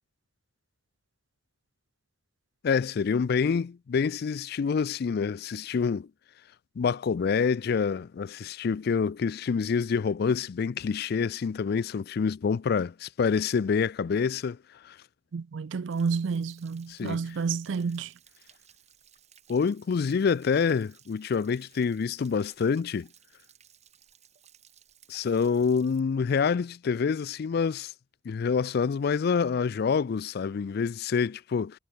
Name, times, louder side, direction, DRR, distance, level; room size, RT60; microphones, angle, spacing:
voice 1, 2.6-6.1 6.8-14.6 14.8-15.0 16.9-17.3 19.5-23.1 25.1-27.9 28.3-31.8, left 5 dB, 55° left, 0.4 m, -27 dB
voice 2, 15.3-18.1, right 5 dB, 75° right, 0.4 m, -30 dB
Stream / Splash splatter / Trickle dribble, 15.9-26.0, right 9 dB, 35° right, 3.4 m, -59 dB
head